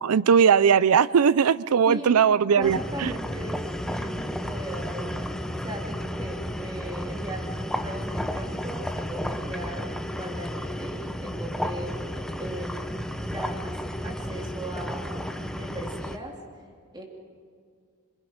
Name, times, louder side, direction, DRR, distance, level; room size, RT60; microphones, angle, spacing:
voice 1, 0.0-3.1, right 7 dB, 80° right, 19 dB, 0.5 m, -19 dB
voice 2, 1.9-2.2 2.5-3.6 3.9-5.3 5.6-9.8 10.1-16.4 16.9-17.0, right 1 dB, 20° right, 0 dB, 2.8 m, -38 dB
sound 1, 2.6-16.2, equal, 5° left, 0.8 m, -32 dB
27.0 x 23.0 x 5.1 m, 2.1 s
head